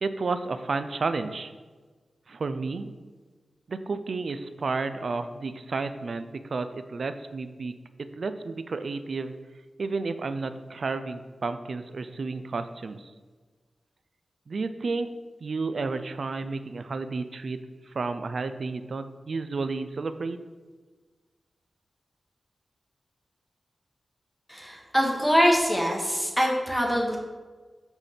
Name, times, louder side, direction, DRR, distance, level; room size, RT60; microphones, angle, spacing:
voice 1, 0.0-1.5 2.3-2.9 3.7-7.7 8.2-9.3 9.8-13.1 14.5-15.1 15.4-17.6 17.9-20.4, right 4 dB, 55° right, 10 dB, 0.4 m, -31 dB
voice 2, 24.5-27.2, equal, ahead, -1 dB, 1.1 m, -23 dB
6.1 x 3.4 x 5.7 m, 1.4 s
wide cardioid pair, 145°, 0 cm